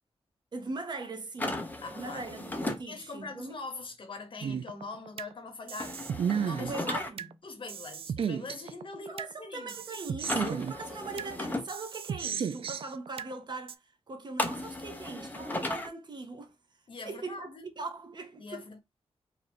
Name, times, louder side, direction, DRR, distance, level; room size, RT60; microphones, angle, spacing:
voice 1, 0.5-3.6 6.6-7.4 9.1-16.5 17.0-17.5 17.8-18.6, right 3 dB, 45° right, 0.8 m, -40 dB
sound 1, 1.4-2.8 5.8-7.1 10.2-11.6 14.4-15.9, left 2 dB, 15° left, 0.6 m, -35 dB
voice 2, 1.8-2.2 2.9-6.8 7.4-9.7 16.9-17.7 18.4-18.8, left 3 dB, 55° left, 0.9 m, -43 dB
sound 2, 4.4-5.3 5.7-7.3 7.7-9.3 9.7-11.3 11.7-13.3 13.7-13.8, right 7 dB, 60° right, 0.3 m, -34 dB
3.1 x 2.6 x 4.2 m
wide cardioid pair, 160°, 11 cm